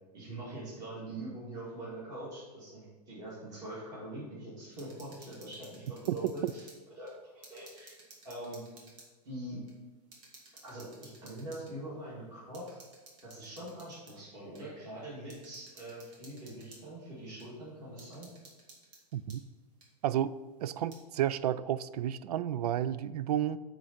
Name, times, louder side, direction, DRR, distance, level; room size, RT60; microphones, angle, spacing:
voice 1, 0.1-6.6 7.0-7.9 8.2-8.6 9.2-9.6 10.6-12.8 13.2-18.3, right 1 dB, 20° right, -10 dB, 2.2 m, -43 dB
sound 1, 4.7-6.8 7.1-9.1 9.7-9.8 10.1-11.7 12.5-14.2 14.5-14.6 15.3-16.8 17.4-17.5 18.0-19.4 19.8-19.9 20.7-21.0, right 2 dB, 50° right, 2.2 m, -56 dB
voice 2, 20.0-20.3 20.6-23.6, right 11 dB, 65° right, 16 dB, 0.4 m, -31 dB
9.2 x 3.9 x 5.9 m, 1.2 s
supercardioid pair, 170°, 21 cm